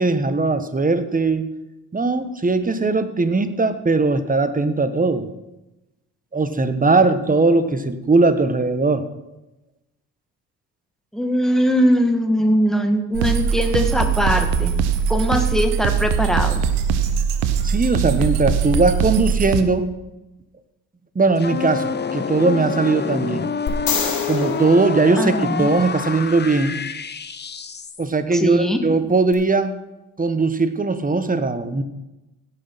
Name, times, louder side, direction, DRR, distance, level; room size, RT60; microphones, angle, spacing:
voice 1, 0.0-1.5 1.9-5.3 6.3-9.0 17.6-19.9 21.1-23.4 24.3-26.8 28.0-29.7 30.2-31.8, right 3 dB, 20° right, 11 dB, 1.3 m, -19 dB
voice 2, 11.1-14.8 15.1-16.6 25.2-25.7 28.3-28.8, equal, ahead, 5 dB, 1.9 m, -20 dB
sound 1, 13.1-19.6, right 7 dB, 75° right, 1.0 m, -21 dB
sound 2, 21.4-28.1, left 5 dB, 25° left, 0.9 m, -27 dB
sound 3, 23.7-25.9 29.3-29.4, left 6 dB, 50° left, 3.7 m, -28 dB
16.5 x 6.5 x 5.7 m, 0.98 s
hypercardioid pair, 55°, 44 cm